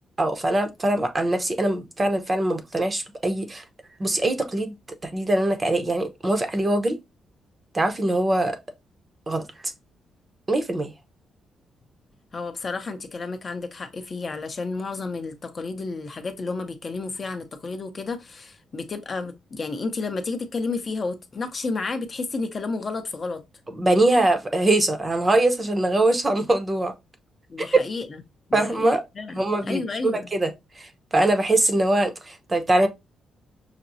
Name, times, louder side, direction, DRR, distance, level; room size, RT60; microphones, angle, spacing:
voice 1, 0.2-3.6 4.0-4.7 5.0-7.0 7.7-8.6 9.3-9.5 10.5-10.9 23.7-26.9 27.6-27.7 28.5-29.0 29.3-30.5 30.8-32.9, right 1 dB, 20° right, 0.6 m, -22 dB
voice 2, 12.3-23.4 27.5-28.2 28.5-30.3, left 3 dB, 35° left, 0.6 m, -31 dB
5.7 x 2.0 x 2.6 m
cardioid pair, 130°, 0 cm